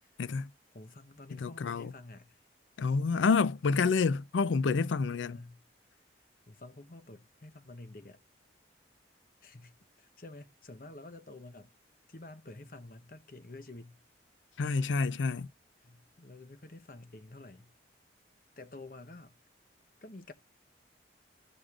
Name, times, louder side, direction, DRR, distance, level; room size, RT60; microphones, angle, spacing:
voice 1, 0.2-0.5 1.4-1.9 2.8-5.4 14.6-15.5, left 4 dB, 85° left, 0.4 m, -28 dB
voice 2, 0.7-2.4 5.1-5.6 6.5-8.2 9.4-11.7 12.1-14.0 15.8-17.7 18.6-19.4 20.0-20.3, left 2 dB, 50° left, 0.9 m, -49 dB
14.5 x 5.0 x 2.4 m
head